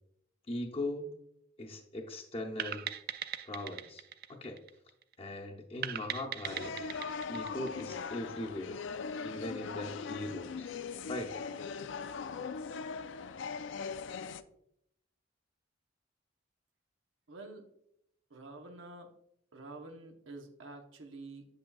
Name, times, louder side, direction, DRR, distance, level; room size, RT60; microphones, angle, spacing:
voice 1, 0.5-1.1 1.6-2.9 3.4-4.0 4.3-4.6 5.2-6.7 7.3-8.8 9.2-10.7 11.1-11.4, left 1 dB, 30° left, -1 dB, 0.7 m, -39 dB
sound 1, 2.6-5.1 5.8-8.4, right 10 dB, 55° right, 0.4 m, -40 dB
sound 2, 6.4-14.4, left 5 dB, 70° left, 0.4 m, -40 dB
voice 2, 17.3-17.7 18.3-19.1 19.5-21.5, right 2 dB, 90° right, 3 dB, 0.9 m, -48 dB
7.8 x 6.9 x 2.3 m, 0.75 s
head